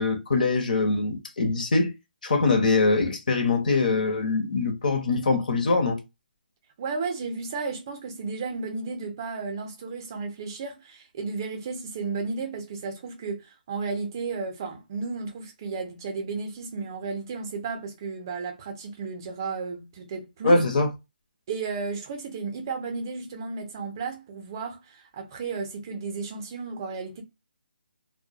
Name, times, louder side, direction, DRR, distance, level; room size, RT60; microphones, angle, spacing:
voice 1, 0.0-1.9 2.2-6.0 20.4-20.9, left 3 dB, 55° left, 0.7 m, -23 dB
voice 2, 6.8-20.6 21.5-27.2, right 4 dB, 25° right, 0.5 m, -33 dB
2.2 x 2.1 x 2.7 m
hypercardioid pair, 170°, 5 cm